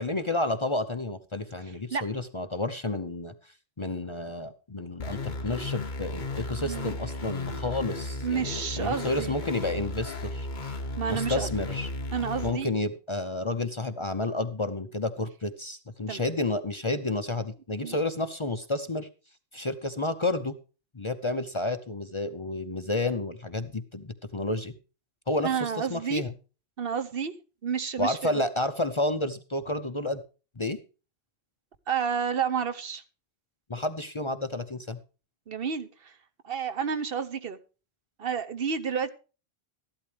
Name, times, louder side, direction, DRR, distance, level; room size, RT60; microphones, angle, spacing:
voice 1, 0.0-3.3 3.8-10.5 11.1-11.9 12.4-19.1 19.5-20.6 20.9-24.8 25.3-26.3 28.0-30.2 30.6-30.8 33.7-35.0, left 2 dB, 30° left, 0.7 m, -30 dB
sound 1, 5.0-12.5, left 2 dB, 45° left, 1.2 m, -35 dB
voice 2, 6.6-7.1 7.5-7.6 8.2-9.3 10.6-11.5 12.1-12.7 16.1-16.2 17.8-18.0 25.4-26.2 26.8-27.3 27.6-28.4 31.9-33.0 35.5-36.1 36.4-37.6 38.2-39.1, right 7 dB, 60° right, 1.0 m, -30 dB
14.0 x 11.5 x 3.4 m
omnidirectional pair, 1.1 m